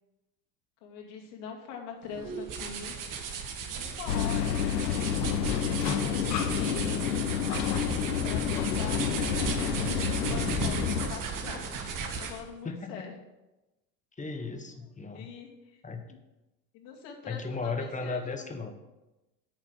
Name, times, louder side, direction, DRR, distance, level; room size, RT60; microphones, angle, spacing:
voice 1, 0.8-2.9 3.7-4.6 5.5-7.0 8.0-13.1 15.1-15.8 16.1-16.2 16.7-18.7, left 6 dB, 60° left, 0 dB, 2.4 m, -43 dB
sound 1, 2.1-12.5, right 5 dB, 40° right, 1.7 m, -35 dB
sound 2, 4.1-11.1, left 9 dB, 90° left, 0.9 m, -29 dB
voice 2, 10.5-10.8 12.6-13.1 14.2-15.3 15.8-16.2 17.3-18.7, left 4 dB, 15° left, 6 dB, 1.3 m, -36 dB
8.8 x 6.8 x 6.2 m, 1.0 s
hypercardioid pair, 90°, 49 cm